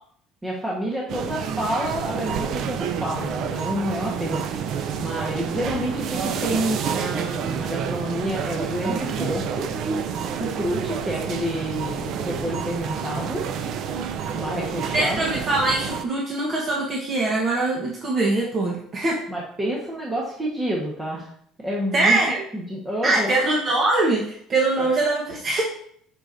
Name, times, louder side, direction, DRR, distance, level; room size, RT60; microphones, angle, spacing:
voice 1, 0.4-4.5 5.0-9.7 10.3-13.4 14.3-15.4 19.3-21.3 21.6-22.2 22.5-23.3 24.8-24.9, equal, 15° right, -4 dB, 1.3 m, -28 dB
sound 1, 1.1-16.0, right 7 dB, 55° right, 0.6 m, -29 dB
voice 2, 14.9-19.2 21.9-22.4 23.0-25.6, right 2 dB, 35° right, -2 dB, 1.1 m, -22 dB
7.9 x 5.8 x 2.6 m, 0.65 s
cardioid pair, 140°, 0 cm